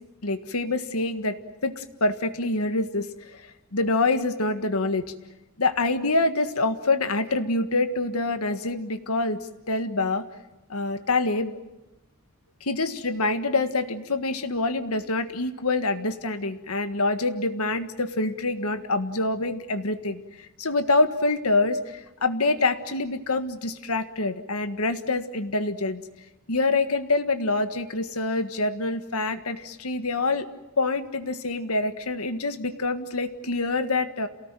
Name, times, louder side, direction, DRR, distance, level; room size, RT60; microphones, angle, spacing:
voice 1, 0.2-1.4 1.6-5.1 5.6-10.2 10.7-11.5 12.6-20.2 20.6-26.0 26.5-30.5 30.8-34.3, left 2 dB, 85° left, 9 dB, 1.7 m, -26 dB
28.5 x 18.5 x 9.1 m, 1.0 s
head